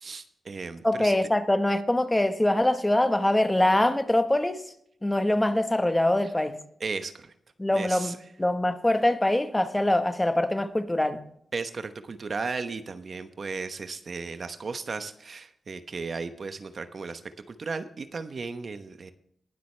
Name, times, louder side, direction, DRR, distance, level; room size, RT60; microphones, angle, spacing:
voice 1, 0.0-1.2 6.8-7.3 7.7-8.1 11.5-17.2 17.5-19.1, right 4 dB, 55° right, 0.9 m, -35 dB
voice 2, 0.8-4.6 5.0-6.6 7.6-11.2, left 1 dB, 15° left, 1.2 m, -24 dB
19.5 x 7.8 x 3.3 m
cardioid pair, 55°, 0 cm